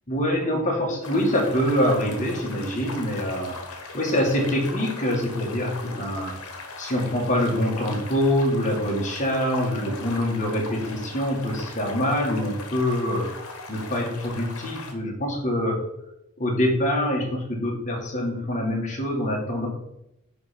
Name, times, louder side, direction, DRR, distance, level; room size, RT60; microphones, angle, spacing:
voice 1, 0.1-6.5 6.8-15.8 16.4-19.7, equal, 35° left, -1 dB, 1.7 m, -25 dB
sound 1, 1.0-14.9, left 3 dB, 75° left, 1.2 m, -39 dB
10.0 x 3.4 x 4.3 m, 0.85 s
head